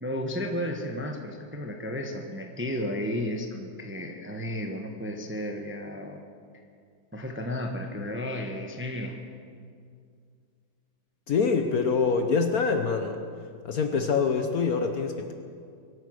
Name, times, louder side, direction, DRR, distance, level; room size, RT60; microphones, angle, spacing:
voice 1, 0.0-6.2 7.1-9.2, left 1 dB, 10° right, 3 dB, 0.8 m, -33 dB
voice 2, 11.3-13.2 13.6-15.3, left 5 dB, 55° left, 6 dB, 1.1 m, -25 dB
23.0 x 9.0 x 6.4 m, 2.2 s
omnidirectional pair, 2.2 m